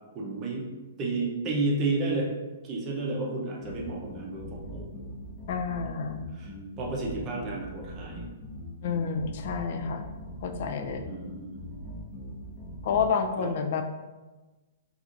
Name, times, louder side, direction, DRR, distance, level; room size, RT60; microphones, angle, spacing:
voice 1, 0.1-0.7 1.0-2.3 2.6-4.9 6.3-8.2 11.1-11.7 13.4-13.5, right 2 dB, 25° right, -2 dB, 0.6 m, -31 dB
sound 1, 3.6-13.1, equal, 20° left, 0.9 m, -41 dB
voice 2, 5.5-6.3 8.8-10.1 10.4-11.1 12.8-13.8, left 6 dB, 50° left, 6 dB, 0.4 m, -29 dB
4.3 x 2.4 x 2.5 m, 1.2 s
hypercardioid pair, 155°, 0 cm